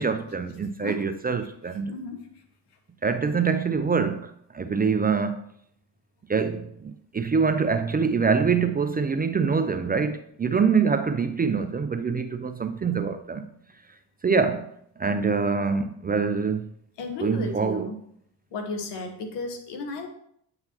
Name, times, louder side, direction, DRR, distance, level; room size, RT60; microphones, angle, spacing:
voice 1, 0.0-1.9 3.0-5.4 6.3-13.5 14.2-14.7 15.0-16.7 17.2-17.8, right 5 dB, 25° right, 0.4 m, -25 dB
voice 2, 1.9-2.3 17.0-18.0 18.5-20.1, left 2 dB, 75° left, 1.2 m, -34 dB
8.7 x 4.0 x 2.9 m
supercardioid pair, 70°, 42 cm